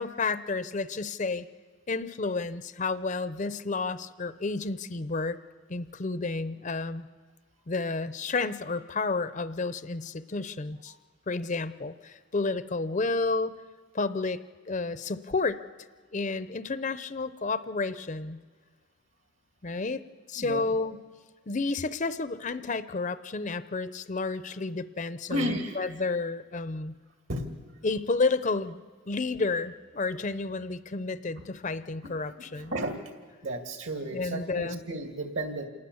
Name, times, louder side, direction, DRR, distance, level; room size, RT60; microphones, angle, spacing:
voice 1, 0.0-1.5 1.9-5.4 5.7-7.1 7.7-10.9 11.3-13.5 13.9-14.4 14.7-15.6 16.1-18.4 19.6-20.0 20.3-21.0 21.5-26.9 27.8-28.8 29.1-32.7 34.1-34.8, left 3 dB, 35° left, 13 dB, 0.6 m, -31 dB
voice 2, 25.3-25.8 27.3-27.5 32.0-32.1 32.4-33.0 33.4-35.7, right 1 dB, 65° right, 5 dB, 2.6 m, -33 dB
27.5 x 19.5 x 7.1 m, 1.5 s
head